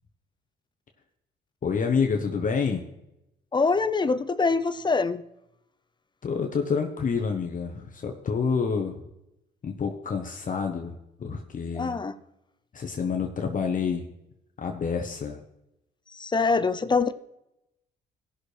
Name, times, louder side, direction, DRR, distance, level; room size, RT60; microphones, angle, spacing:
voice 1, 1.6-2.9 6.2-9.0 9.6-12.0 12.7-14.1 14.6-15.4, left 5 dB, 40° left, 3 dB, 1.0 m, -28 dB
voice 2, 3.5-5.2 11.7-12.1 16.1-17.1, left 4 dB, 25° left, 12 dB, 0.6 m, -24 dB
17.5 x 6.3 x 3.3 m, 0.88 s
cardioid pair, 90°, 20 cm